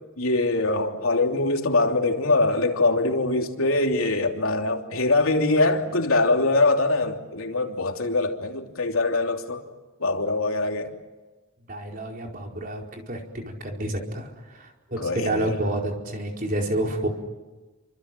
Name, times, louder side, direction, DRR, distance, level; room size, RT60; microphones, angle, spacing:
voice 1, 0.2-9.6 10.0-10.9 15.0-15.5, left 2 dB, 80° left, 3.2 m, -23 dB
voice 2, 11.7-17.1, right 1 dB, 40° right, 4.6 m, -29 dB
28.5 x 26.0 x 7.7 m
head